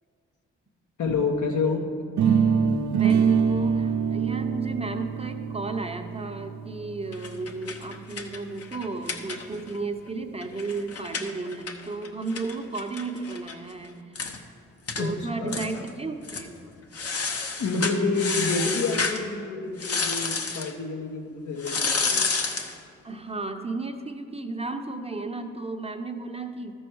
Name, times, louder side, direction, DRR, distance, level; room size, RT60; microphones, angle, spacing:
voice 1, 1.0-1.9 15.0-15.6 17.6-22.3, left 3 dB, 65° left, 2 dB, 1.2 m, -28 dB
sound 1, 2.2-8.1, right 6 dB, 65° right, 0.6 m, -25 dB
voice 2, 2.9-14.2 15.0-16.6 23.0-26.7, right 3 dB, 20° right, 5 dB, 0.8 m, -34 dB
sound 2, 7.1-9.8 10.1-10.2 10.4-13.6 13.9-14.0 14.2-14.4 14.9-15.1 15.5-15.9 16.2-16.5 16.9-19.2 19.8-20.7 21.6-22.8, left 4 dB, 50° left, 1.0 m, -30 dB
13.0 x 6.3 x 4.6 m, 2.4 s
cardioid pair, 55°, 31 cm